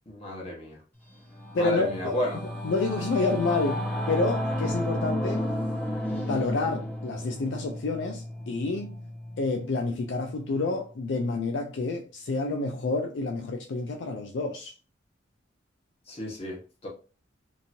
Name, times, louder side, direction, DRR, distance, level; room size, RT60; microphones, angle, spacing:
voice 1, 0.1-0.8 1.5-2.4 16.1-16.9, equal, 30° left, 1.2 m, -32 dB
Singing / Musical instrument, 1.1-10.8, left 1 dB, 10° left, 0.9 m, -33 dB
voice 2, 1.5-2.2 2.6-5.5 6.1-9.0 9.4-14.7, left 3 dB, 65° left, 0.4 m, -29 dB
2.9 x 2.7 x 2.5 m
head